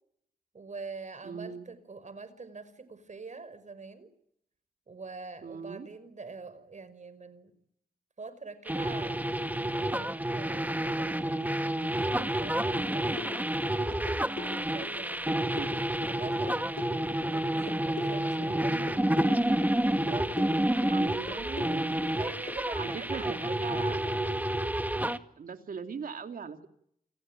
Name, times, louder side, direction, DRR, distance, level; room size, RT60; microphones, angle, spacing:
voice 1, 0.5-4.1 4.9-7.5 8.2-9.2 9.7-11.4 11.9-14.1 14.4-15.4 16.0-16.6 17.2-19.2 20.0-21.2 22.2-24.0, right 4 dB, 55° right, 14 dB, 5.4 m, -45 dB
voice 2, 1.2-1.7 5.4-5.9 15.6-15.8 18.5-19.2 20.9-22.0 22.8-24.4 25.4-26.7, right 6 dB, 75° right, 7 dB, 2.8 m, -40 dB
sound 1, 8.7-25.2, right 1 dB, 10° right, 1.9 m, -29 dB
sound 2, 13.2-22.6, left 4 dB, 60° left, 7.3 m, -41 dB
29.0 x 19.0 x 9.0 m, 0.73 s
cardioid pair, 50°, 15 cm